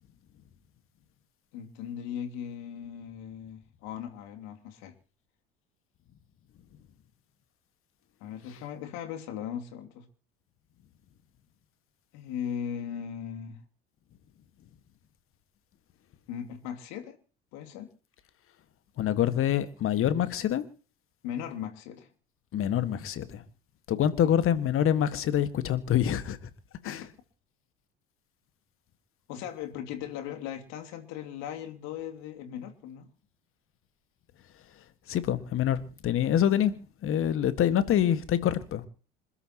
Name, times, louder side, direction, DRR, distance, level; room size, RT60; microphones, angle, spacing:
voice 1, 1.5-4.9 8.2-10.1 12.1-13.6 16.3-17.2 17.5-17.9 21.2-22.1 24.2-24.3 26.8-27.1 29.3-33.1, left 9 dB, 60° left, 2.8 m, -38 dB
voice 2, 19.0-20.6 22.5-23.4 23.9-26.4 26.8-27.0 35.1-36.7 37.0-38.8, left 10 dB, 45° left, 1.7 m, -26 dB
27.0 x 13.0 x 3.0 m
hypercardioid pair, 65°, 30 cm